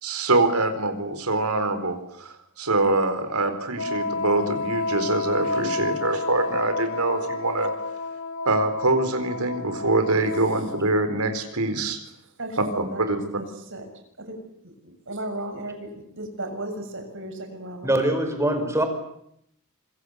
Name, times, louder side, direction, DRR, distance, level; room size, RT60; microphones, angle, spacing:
voice 1, 0.0-7.7 8.5-12.0 12.8-13.2, right 2 dB, 85° right, 8 dB, 4.2 m, -24 dB
Wind instrument woodwind instrument, 3.7-11.1, left 3 dB, 75° left, 2.8 m, -31 dB
voice 2, 12.4-13.9 14.2-14.4 14.6-18.0, right 1 dB, 60° right, 5 dB, 6.8 m, -35 dB
voice 3, 17.8-18.9, right 1 dB, 15° right, 7 dB, 5.0 m, -23 dB
26.0 x 24.0 x 8.1 m, 0.73 s
head